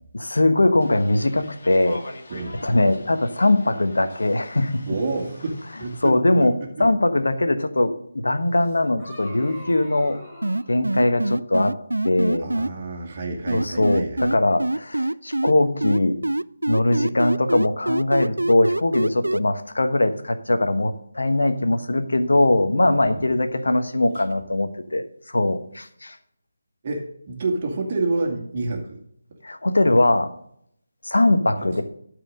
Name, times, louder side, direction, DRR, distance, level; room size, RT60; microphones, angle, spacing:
voice 1, 0.1-2.0 2.6-5.0 6.0-6.5 6.8-10.2 10.7-11.8 12.0-12.5 13.5-16.2 16.7-26.2 29.4-30.3 31.0-31.8, left 2 dB, 70° left, 9 dB, 1.2 m, -21 dB
sound 1, 0.8-6.1, left 1 dB, 50° left, 2.1 m, -43 dB
voice 2, 2.3-2.6 4.9-6.5 6.8-6.9 12.4-14.4 22.8-23.4 26.8-29.0 31.7-31.8, right 3 dB, 35° right, 0 dB, 2.2 m, -29 dB
sound 2, 8.6-10.8, equal, 20° left, 3.1 m, -42 dB
sound 3, 10.4-12.7 13.5-15.5 15.8-19.4, right 1 dB, 80° right, 0.4 m, -24 dB
12.5 x 4.9 x 6.4 m, 0.69 s
figure-of-eight pair, 155°, 0 cm